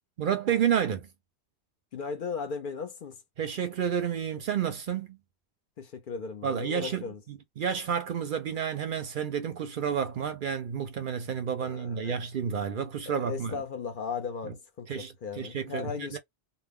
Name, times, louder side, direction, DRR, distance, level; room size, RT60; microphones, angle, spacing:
voice 1, 0.2-1.1 3.4-5.2 6.4-13.6 14.4-14.5 14.9-16.2, right 8 dB, 60° right, 0.6 m, -30 dB
voice 2, 1.9-3.2 5.8-7.2 11.6-12.2 13.1-16.2, left 5 dB, 60° left, 0.6 m, -37 dB
2.2 x 2.0 x 3.5 m
omnidirectional pair, 1.1 m